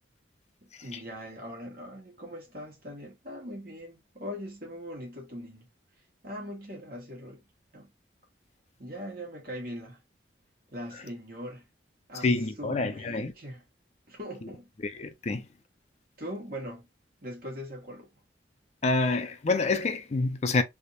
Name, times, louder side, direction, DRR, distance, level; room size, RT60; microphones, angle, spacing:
voice 1, 0.8-5.7 6.2-7.4 7.7-7.9 8.8-10.0 10.7-11.6 12.1-12.3 12.6-13.6 14.1-14.7 16.2-16.9 17.2-18.1, equal, 55° right, 1.6 m, -41 dB
voice 2, 12.2-13.3 14.8-15.5 18.8-20.6, left 3 dB, 35° left, 0.4 m, -27 dB
3.4 x 2.8 x 2.6 m
head